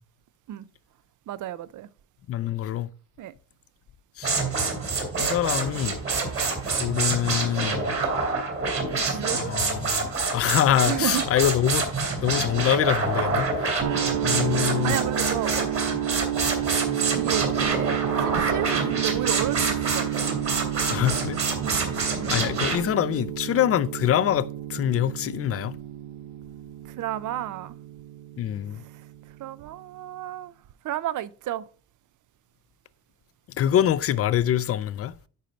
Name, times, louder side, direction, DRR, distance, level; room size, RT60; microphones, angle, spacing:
voice 1, 1.3-1.9 3.2-3.3 9.0-9.5 10.9-11.2 14.8-15.7 17.1-20.1 21.6-21.9 27.0-27.8 29.4-30.5 30.8-31.6, right 12 dB, 55° right, 0.5 m, -32 dB
voice 2, 2.3-2.9 4.2-4.3 5.2-6.0 6.8-7.9 9.3-11.9 12.2-13.7 14.2-15.0 18.7-18.8 20.9-21.4 22.3-25.7 28.4-28.8 33.6-35.1, left 11 dB, 40° left, 0.4 m, -25 dB
sound 1, 4.2-22.8, right 4 dB, 35° right, 2.7 m, -27 dB
sound 2, 13.8-29.7, right 11 dB, 75° right, 1.0 m, -31 dB
10.0 x 4.4 x 5.1 m
cardioid pair, 165°, 38 cm